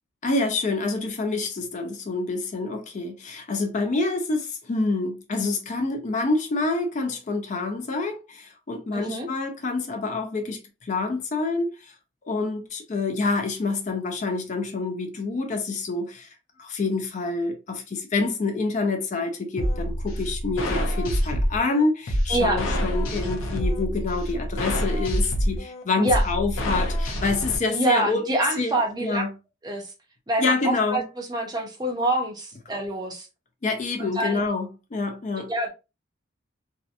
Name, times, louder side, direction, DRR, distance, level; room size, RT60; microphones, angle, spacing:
voice 1, 0.2-11.9 12.2-16.3 16.6-28.3 28.6-29.3 30.4-31.0 33.6-35.5, left 3 dB, 35° left, 0.4 m, -27 dB
voice 2, 8.9-9.3 22.3-22.6 26.0-26.2 27.7-29.2 29.6-29.9 30.3-33.3 34.0-34.5 35.4-35.7, right 1 dB, 20° right, 0.5 m, -26 dB
sound 1, 19.6-27.6, equal, 85° left, 0.7 m, -26 dB
2.7 x 2.1 x 2.4 m
head